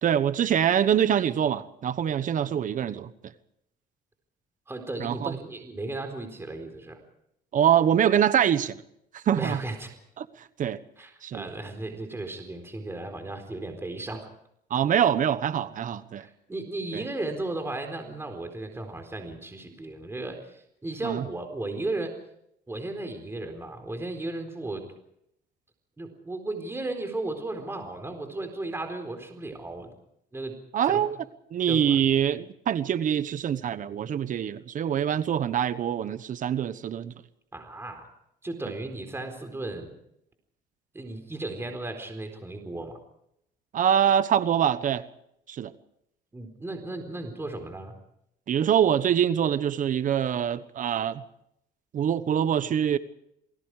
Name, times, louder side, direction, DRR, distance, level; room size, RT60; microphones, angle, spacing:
voice 1, 0.0-3.3 5.0-5.3 7.5-8.8 9.1-9.6 10.2-10.8 11.2-11.5 14.7-16.3 16.9-17.0 21.0-21.2 30.7-31.1 31.5-37.1 43.7-45.1 45.5-45.7 48.5-51.2 51.9-53.0, right 9 dB, 50° right, 1.2 m, -24 dB
voice 2, 4.7-7.0 9.3-9.9 11.0-14.3 16.2-22.1 22.7-24.8 26.0-29.9 30.3-30.5 30.8-31.1 31.7-32.0 37.5-38.1 38.4-39.9 40.9-43.0 46.3-48.0, right 2 dB, 15° right, 4.2 m, -35 dB
29.0 x 20.0 x 5.0 m
cardioid pair, 110°, 17 cm